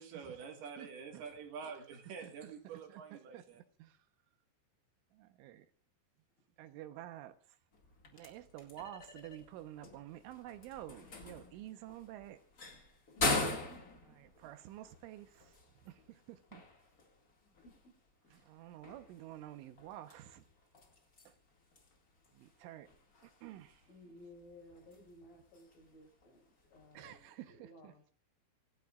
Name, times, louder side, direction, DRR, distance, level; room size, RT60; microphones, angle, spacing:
voice 1, 0.0-3.6, right 6 dB, 65° right, 3.3 m, -47 dB
voice 2, 0.8-1.2 2.2-4.0 5.1-5.7 6.6-7.6 8.1-12.4 14.2-15.6 15.8-16.6 18.3-20.4 21.3-21.4 22.3-22.9 23.2-23.8 26.9-27.9, right 13 dB, 90° right, 3.5 m, -50 dB
sound 1, 7.7-27.3, left 3 dB, 60° left, 0.9 m, -44 dB
voice 3, 17.4-17.9 23.8-26.4 26.7-28.1, equal, 90° left, 7.7 m, -57 dB
26.0 x 17.0 x 2.5 m
omnidirectional pair, 5.5 m